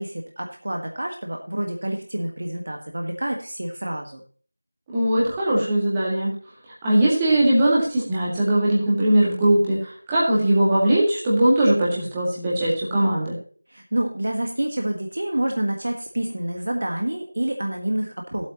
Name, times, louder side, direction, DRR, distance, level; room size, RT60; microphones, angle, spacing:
voice 1, 0.0-4.2 13.7-18.5, right 1 dB, 45° right, 2 dB, 1.5 m, -28 dB
voice 2, 4.9-6.3 6.8-13.4, right 1 dB, 10° right, -7 dB, 2.0 m, -20 dB
15.0 x 8.2 x 3.0 m, 0.42 s
figure-of-eight pair, 170°, 0 cm